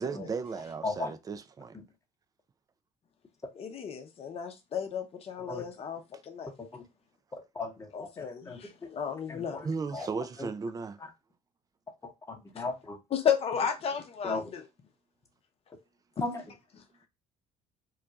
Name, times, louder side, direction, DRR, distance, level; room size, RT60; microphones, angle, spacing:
voice 1, 0.0-1.8 9.6-11.0, right 5 dB, 25° right, 0.4 m, -35 dB
voice 2, 3.6-6.5 7.9-9.6 13.1-14.6, left 7 dB, 40° left, 0.7 m, -33 dB
voice 3, 7.3-8.7 9.3-9.7 9.9-10.1 10.4-10.5 12.0-13.0 14.2-14.5 16.2-16.4, left 3 dB, 20° left, 1.0 m, -37 dB
2.3 x 2.2 x 3.9 m
supercardioid pair, 75°, 15 cm